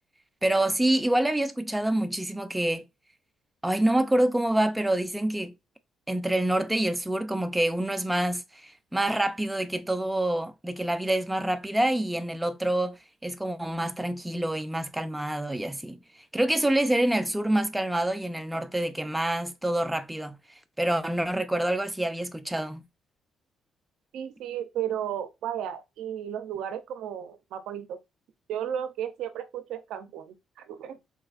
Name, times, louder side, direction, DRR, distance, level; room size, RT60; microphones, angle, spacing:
voice 1, 0.4-2.9 3.6-5.5 6.1-16.0 16.3-20.4 20.8-22.8, right 1 dB, 5° right, 0.4 m, -27 dB
voice 2, 24.1-28.0 28.5-30.3 30.7-31.0, right 10 dB, 85° right, 0.5 m, -34 dB
4.0 x 2.3 x 2.4 m
cardioid pair, 90°, 0 cm